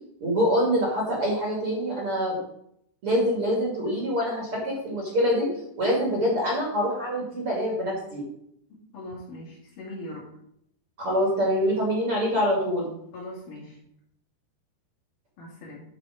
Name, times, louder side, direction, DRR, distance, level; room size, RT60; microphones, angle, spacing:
voice 1, 0.2-2.4 3.0-8.2 11.0-12.9, equal, 35° right, -3 dB, 2.8 m, -25 dB
voice 2, 8.9-10.2 13.1-13.8 15.4-15.8, left 1 dB, 50° left, -5 dB, 4.5 m, -40 dB
12.5 x 5.3 x 5.2 m, 0.72 s
omnidirectional pair, 5.1 m